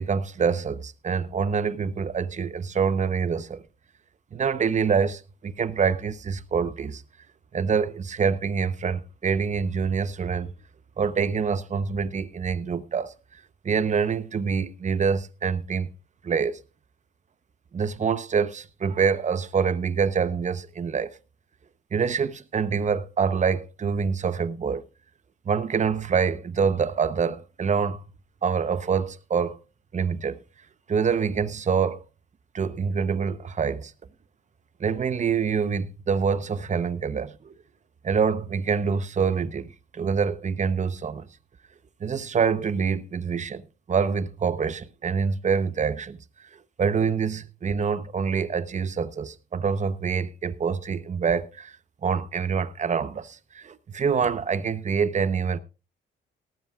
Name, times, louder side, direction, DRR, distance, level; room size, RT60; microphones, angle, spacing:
voice 1, 0.0-3.6 4.3-7.0 7.5-10.5 11.0-15.9 16.2-16.6 17.7-21.2 21.9-24.8 25.4-28.0 28.4-29.6 29.9-30.4 30.9-32.0 32.5-33.9 34.8-37.5 38.0-41.3 42.0-43.6 43.9-46.2 46.8-51.8 52.0-55.6, right 6 dB, 35° right, 0.9 m, -26 dB
17.5 x 14.0 x 2.5 m
cardioid pair, 90°, 20 cm